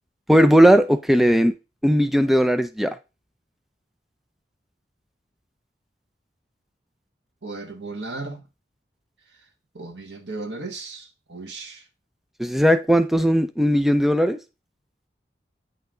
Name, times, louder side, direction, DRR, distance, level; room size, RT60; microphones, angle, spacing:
voice 1, 0.3-1.5 1.8-2.9 12.4-14.4, equal, ahead, 0.4 m, -17 dB
voice 2, 7.4-8.4 9.7-11.8, right 3 dB, 85° right, 1.5 m, -35 dB
9.4 x 5.4 x 3.8 m
head